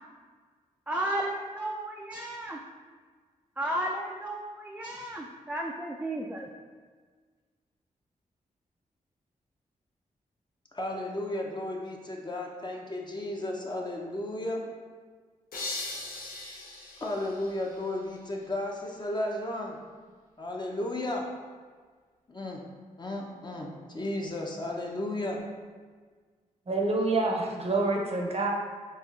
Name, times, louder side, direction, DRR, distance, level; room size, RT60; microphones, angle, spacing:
voice 1, 0.9-2.6 3.6-6.5, right 1 dB, 10° right, -1 dB, 0.3 m, -33 dB
voice 2, 10.7-14.6 17.0-19.8 20.4-21.3 22.3-22.6 23.0-25.4, left 1 dB, 30° left, 0 dB, 0.7 m, -34 dB
sound 1, 15.5-18.3, left 2 dB, 70° left, 0.7 m, -40 dB
voice 3, 26.7-28.5, right 2 dB, 45° right, 0 dB, 0.7 m, -27 dB
4.2 x 3.0 x 2.5 m, 1.5 s
supercardioid pair, 45°, 15 cm